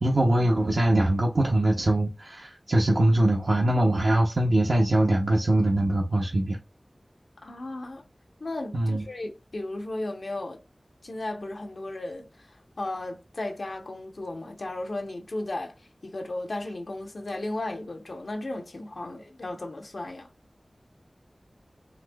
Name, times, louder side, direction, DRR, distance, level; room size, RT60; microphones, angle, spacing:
voice 1, 0.0-6.6 8.7-9.1, right 1 dB, 70° right, 0.5 m, -22 dB
voice 2, 7.4-8.0 8.4-10.6 11.0-15.7 16.0-20.3, left 2 dB, 80° left, 0.7 m, -35 dB
4.0 x 2.6 x 2.2 m
wide cardioid pair, 65°, 0 cm